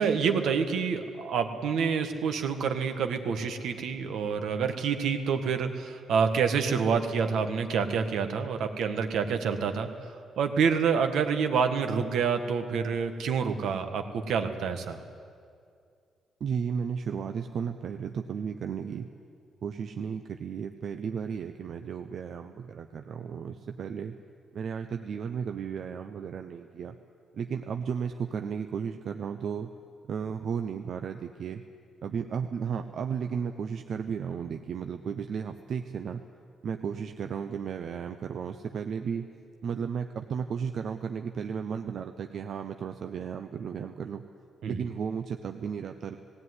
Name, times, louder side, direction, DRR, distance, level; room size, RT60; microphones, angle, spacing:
voice 1, 0.0-9.9 10.4-15.0 44.6-44.8, right 6 dB, 75° right, 7 dB, 1.6 m, -27 dB
voice 2, 16.4-19.1 19.6-24.1 24.5-27.0 27.3-29.7 30.0-31.6 32.0-36.2 36.6-39.3 39.6-44.2 44.7-46.2, right 7 dB, 55° right, 6 dB, 0.7 m, -34 dB
18.0 x 17.0 x 9.7 m, 2.3 s
cardioid pair, 150°, 0 cm